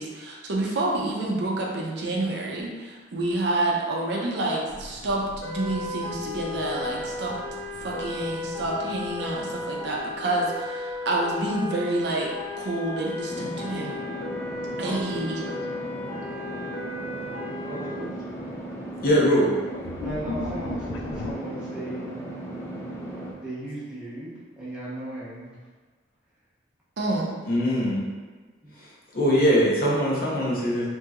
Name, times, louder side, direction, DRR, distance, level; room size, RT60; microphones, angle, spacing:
voice 1, 0.0-7.4 7.8-13.9 14.8-15.4 27.0-27.3, right 2 dB, 65° right, -2 dB, 0.5 m, -28 dB
sound 1, 4.7-11.5 11.8-12.7 14.4-14.7 15.2-15.3 16.3-16.4 16.8-17.2 17.6-21.3, left 3 dB, 90° left, 0.3 m, -40 dB
sound 2, 5.4-17.9, left 3 dB, 70° left, 1.0 m, -35 dB
sound 3, 13.3-23.3, right 1 dB, 15° left, 0.3 m, -36 dB
voice 2, 14.8-15.2 17.6-18.1 20.0-22.2 23.3-25.6 28.6-28.7, right 1 dB, 5° right, -10 dB, 0.8 m, -37 dB
voice 3, 19.0-19.5 27.5-28.0 29.1-30.9, equal, 50° left, -5 dB, 0.6 m, -21 dB
2.8 x 2.6 x 2.3 m, 1.4 s
head